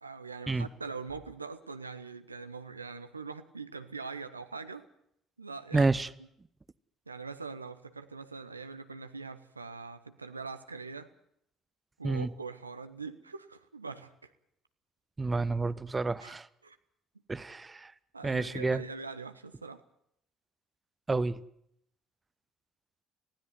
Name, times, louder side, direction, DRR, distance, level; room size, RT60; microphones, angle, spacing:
voice 1, 0.0-4.9 5.4-5.9 7.1-11.1 12.0-14.3 16.2-16.3 16.6-16.8 18.1-19.8, right 4 dB, 85° right, 0.8 m, -42 dB
voice 2, 5.7-6.1 12.0-12.3 15.2-16.5 17.3-17.9 18.2-18.8 21.1-21.4, right 3 dB, 20° right, 0.8 m, -29 dB
19.5 x 16.0 x 9.5 m
figure-of-eight pair, 50°, 0 cm